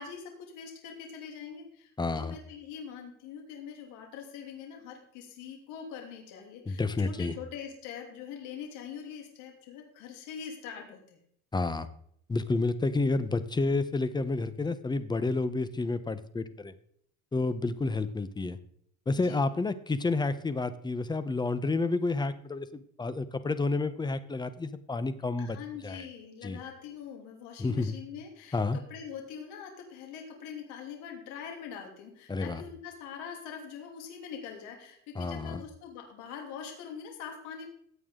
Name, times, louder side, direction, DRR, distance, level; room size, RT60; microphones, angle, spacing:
voice 1, 0.0-11.2 19.2-19.4 25.4-37.7, left 7 dB, 85° left, 2 dB, 2.9 m, -43 dB
voice 2, 2.0-2.4 6.7-7.3 11.5-11.9 12.3-16.7 17.3-18.6 19.1-25.6 25.8-26.1 26.4-26.6 27.6-28.0 28.5-28.8 32.3-32.6 35.1-35.6, left 3 dB, 15° left, 13 dB, 0.9 m, -30 dB
16.0 x 8.4 x 3.8 m, 0.66 s
cardioid pair, 125°, 30 cm